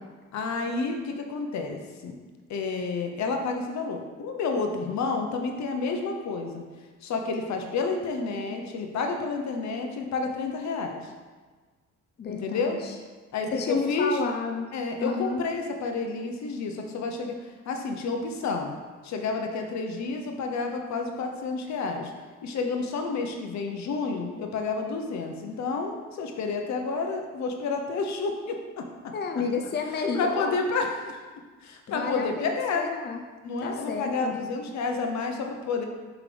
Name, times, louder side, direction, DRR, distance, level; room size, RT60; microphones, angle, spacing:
voice 1, 0.3-2.2 2.5-6.6 7.0-11.1 12.3-12.8 13.3-14.2 14.7-18.7 19.0-22.1 22.4-29.1 30.1-31.2 31.6-32.9 33.4-35.8, left 4 dB, 65° left, 3 dB, 0.8 m, -30 dB
voice 2, 12.2-12.9 13.5-14.7 15.0-15.4 29.1-30.6 31.9-33.2 33.6-34.4, left 4 dB, 35° left, 3 dB, 0.6 m, -30 dB
5.7 x 4.9 x 3.3 m, 1.4 s
cardioid pair, 90°, 30 cm